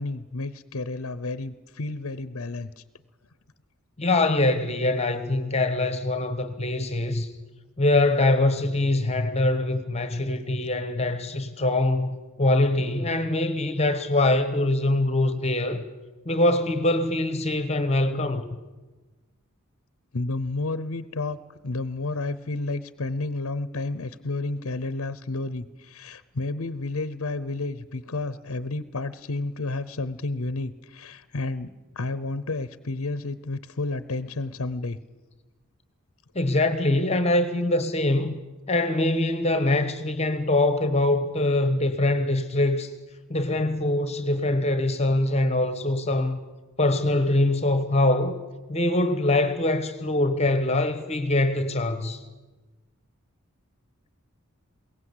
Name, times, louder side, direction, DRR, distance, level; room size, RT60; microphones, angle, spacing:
voice 1, 0.0-2.8 20.1-21.4 21.6-31.7 32.0-35.0, left 2 dB, 70° left, 0.8 m, -31 dB
voice 2, 4.0-7.3 7.8-15.8 16.2-18.4 36.3-38.4 38.7-42.9 43.3-46.4 46.8-48.4 48.7-52.2, left 2 dB, 30° left, 1.2 m, -23 dB
22.0 x 18.0 x 8.1 m
head